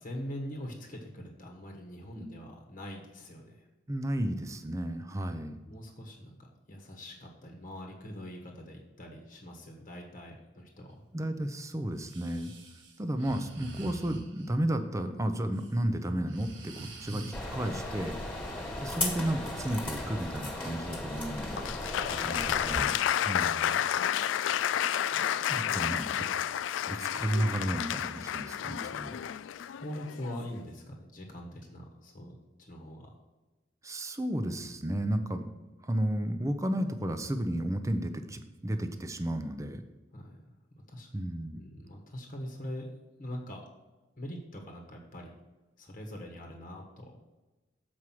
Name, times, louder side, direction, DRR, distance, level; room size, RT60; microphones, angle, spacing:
voice 1, 0.0-3.7 5.6-11.0 22.1-22.4 25.5-26.5 29.7-33.1 40.1-40.5 40.9-41.1 41.5-42.9 43.2-43.6 44.2-45.3 45.8-47.2, equal, 45° left, 1 dB, 1.2 m, -43 dB
voice 2, 3.9-5.6 11.1-12.5 13.0-18.2 18.8-21.7 22.2-23.0 23.3-23.8 25.5-26.1 26.9-29.2 33.8-35.5 35.8-39.8 41.1-41.6, right 1 dB, 15° right, 8 dB, 0.6 m, -33 dB
Breathing, 12.0-14.5 15.3-15.7 16.1-17.4, right 2 dB, 75° right, 1.2 m, -45 dB
sound 1, 17.3-22.8, left 1 dB, 10° left, 1.6 m, -36 dB
Applause, 21.6-30.5, left 10 dB, 90° left, 0.3 m, -31 dB
7.2 x 4.8 x 6.0 m, 1.1 s
head